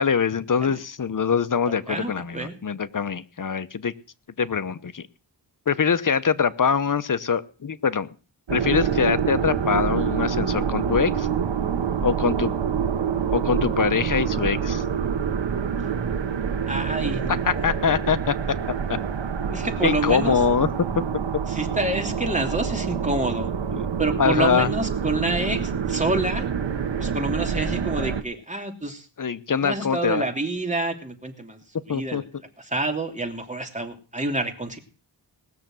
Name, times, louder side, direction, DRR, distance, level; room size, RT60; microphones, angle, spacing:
voice 1, 0.0-3.9 4.4-5.1 5.7-8.1 8.5-11.3 12.0-12.5 13.3-14.8 17.3-19.0 19.5-20.7 23.7-23.8 24.2-24.7 29.2-30.2 31.9-32.2, left 6 dB, 45° left, 14 dB, 1.0 m, -23 dB
voice 2, 1.7-2.6 8.9-9.0 16.7-17.7 19.5-20.4 21.5-23.5 24.0-26.5 27.0-29.1 29.6-34.8, right 2 dB, 15° right, 3 dB, 3.0 m, -28 dB
sound 1, 8.5-28.2, right 7 dB, 80° right, 1.3 m, -26 dB
19.5 x 6.8 x 7.6 m, 0.38 s
wide cardioid pair, 80°, 44 cm